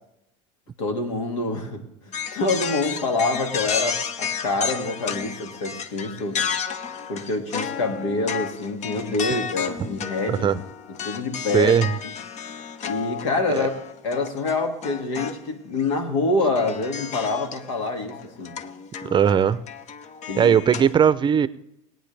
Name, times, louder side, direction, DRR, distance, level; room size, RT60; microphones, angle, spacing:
voice 1, 0.8-1.8 2.3-6.5 7.1-10.6 11.0-11.7 12.8-13.7 14.0-18.6 20.3-20.6, left 3 dB, 85° left, 5 dB, 2.2 m, -26 dB
sound 1, 2.1-15.4 15.8-15.9 16.5-20.9, left 7 dB, 45° left, 1.0 m, -32 dB
voice 2, 10.3-10.6 11.5-11.9 13.5-13.7 19.1-19.7 20.4-21.5, right 8 dB, 30° right, 16 dB, 0.6 m, -18 dB
21.0 x 9.0 x 3.4 m, 0.81 s
supercardioid pair, 90°, 16 cm